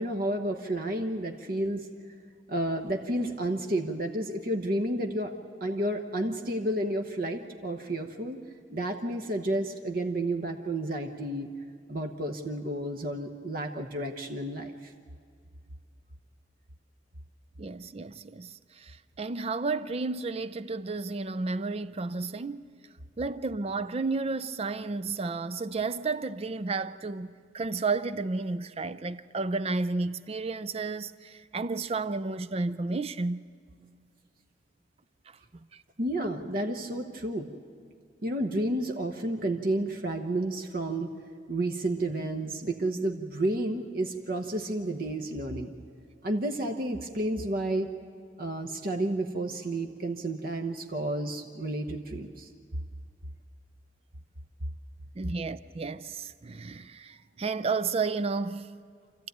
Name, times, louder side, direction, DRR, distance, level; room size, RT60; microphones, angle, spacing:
voice 1, 0.0-1.9 2.5-5.3 5.6-8.4 8.7-11.5 11.9-14.9 36.0-37.5 38.2-41.1 41.5-45.7 46.2-47.9 48.4-52.5, right 1 dB, 50° right, 1.1 m, -31 dB
voice 2, 17.6-22.7 23.2-33.4 35.5-35.8 55.2-58.8, right 3 dB, 30° right, 0.5 m, -32 dB
27.0 x 14.0 x 9.3 m
head